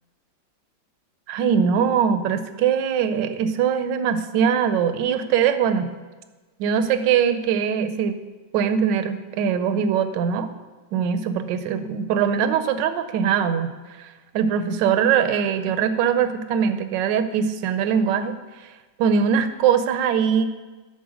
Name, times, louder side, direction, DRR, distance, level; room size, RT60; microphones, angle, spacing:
voice 1, 1.3-5.9 6.6-8.2 8.5-10.5 10.9-13.7 14.0-18.4 19.0-20.4, right 7 dB, 75° right, 10 dB, 1.3 m, -22 dB
11.0 x 4.2 x 6.3 m, 1.3 s
omnidirectional pair, 2.1 m